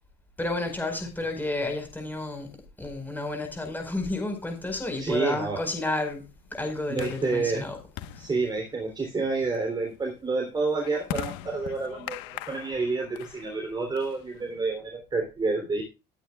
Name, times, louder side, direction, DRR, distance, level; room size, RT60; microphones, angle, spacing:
voice 1, 0.4-2.5 2.8-6.2 6.5-7.8 8.2-8.3, left 2 dB, 10° left, 4.8 m, -31 dB
sound 1, 4.3-14.7, left 12 dB, 85° left, 1.2 m, -42 dB
voice 2, 5.0-5.6 6.9-7.7 8.2-15.8, right 3 dB, 20° right, 3.3 m, -29 dB
19.5 x 9.2 x 2.4 m
cardioid pair, 135°, 19 cm